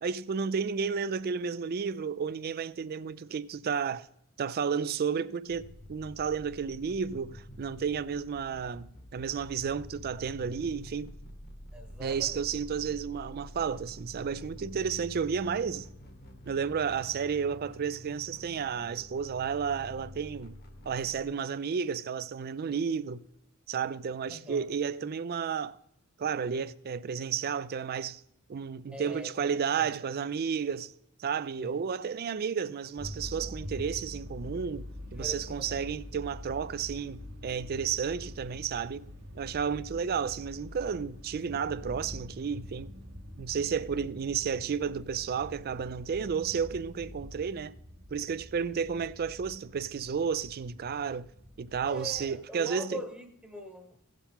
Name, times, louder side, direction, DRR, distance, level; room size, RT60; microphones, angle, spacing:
voice 1, 0.0-4.1 4.4-5.6 5.9-11.1 12.0-15.9 16.5-20.6 20.8-23.2 23.7-25.8 26.2-28.2 28.5-30.9 31.2-34.9 35.1-39.1 39.3-42.9 43.4-47.8 48.1-51.3 51.6-53.0, right 6 dB, 45° right, 0.4 m, -32 dB
sound 1, 5.5-21.2, left 1 dB, 50° left, 1.2 m, -48 dB
voice 2, 11.7-12.4 24.3-24.7 28.9-29.9 31.6-31.8 35.2-35.8 51.8-54.1, equal, 5° right, 1.0 m, -42 dB
sound 2, 33.0-52.4, left 1 dB, 85° right, 2.3 m, -45 dB
16.5 x 7.4 x 3.6 m
head